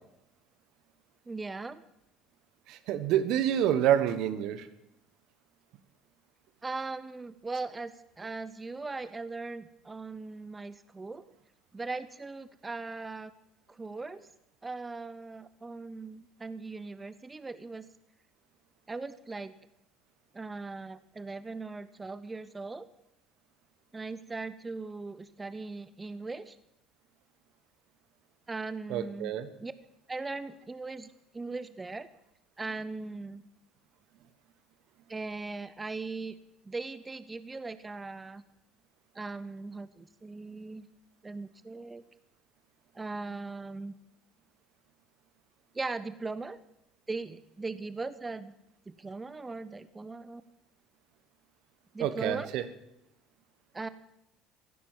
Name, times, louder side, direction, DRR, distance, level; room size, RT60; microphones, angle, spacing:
voice 1, 1.3-1.8 6.6-11.2 11.7-13.3 13.7-14.3 14.6-17.9 18.9-19.5 20.3-22.9 23.9-26.6 28.5-29.3 29.6-29.7 30.1-32.1 32.6-33.4 35.1-36.3 36.7-38.4 39.1-40.9 41.2-42.0 42.9-44.0 45.7-46.6 47.1-48.5 48.9-50.4 51.9-52.5 53.7-53.9, right 3 dB, 20° right, 15 dB, 0.8 m, -39 dB
voice 2, 2.7-4.7 28.9-29.5 52.0-52.7, right 10 dB, 60° right, 13 dB, 1.2 m, -27 dB
16.5 x 11.5 x 7.4 m, 0.84 s
hypercardioid pair, 60°, 0 cm